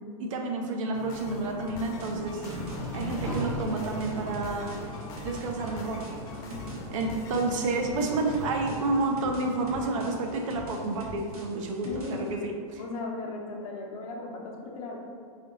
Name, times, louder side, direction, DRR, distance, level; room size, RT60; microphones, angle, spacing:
voice 1, 0.2-2.4 2.9-4.7 5.2-6.0 6.9-12.8, right 3 dB, 60° right, 2 dB, 0.6 m, -30 dB
sound 1, 0.9-10.4, left 2 dB, 20° left, 0.4 m, -43 dB
sound 2, 1.7-12.3, right 1 dB, 85° right, 1.1 m, -44 dB
sound 3, 2.1-8.7, equal, 15° right, 0.8 m, -39 dB
voice 2, 11.8-12.3 12.8-15.0, left 3 dB, 65° left, -1 dB, 0.8 m, -37 dB
3.4 x 2.8 x 3.9 m, 2.2 s
supercardioid pair, 155°, 19 cm